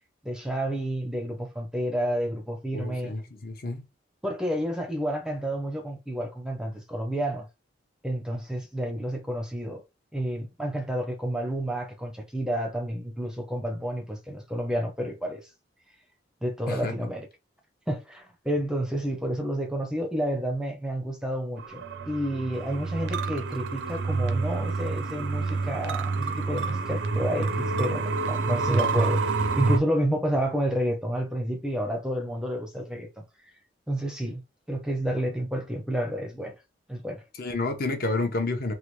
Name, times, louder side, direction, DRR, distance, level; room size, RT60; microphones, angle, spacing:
voice 1, 0.2-3.1 4.2-7.5 8.0-9.8 10.1-15.5 16.4-17.3 17.9-33.2 33.9-34.4 34.7-36.6 36.9-37.2, equal, 5° right, 0.5 m, -30 dB
voice 2, 2.7-3.8 16.7-16.9 37.4-38.7, left 2 dB, 50° left, 0.7 m, -29 dB
sound 1, 21.6-29.8, right 3 dB, 70° right, 0.4 m, -28 dB
3.3 x 2.2 x 3.0 m
head